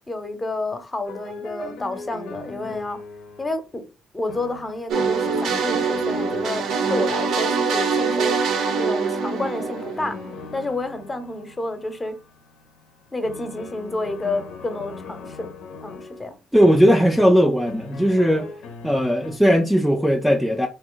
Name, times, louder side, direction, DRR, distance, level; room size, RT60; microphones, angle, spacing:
voice 1, 0.1-3.0 3.4-3.8 4.1-6.6 6.9-8.4 8.8-10.2 10.5-12.1 13.1-15.5 15.8-16.4, left 2 dB, 20° left, 0.7 m, -29 dB
sound 1, 1.0-3.6 4.3-19.4, left 4 dB, 80° left, 0.6 m, -40 dB
sound 2, 4.9-10.6, right 5 dB, 70° right, 0.6 m, -24 dB
voice 2, 16.5-18.5 18.8-20.7, equal, ahead, 0.4 m, -18 dB
2.9 x 2.3 x 3.8 m
cardioid pair, 105°, 0 cm